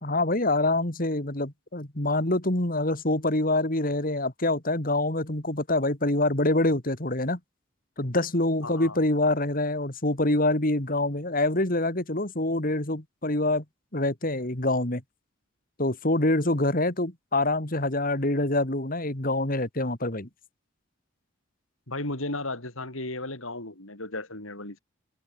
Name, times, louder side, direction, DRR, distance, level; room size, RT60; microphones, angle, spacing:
voice 1, 0.0-7.4 8.0-13.6 13.9-15.0 15.8-20.3, left 2 dB, 40° left, 2.9 m, -25 dB
voice 2, 8.6-9.0 21.9-24.8, left 2 dB, 75° left, 7.3 m, -35 dB
head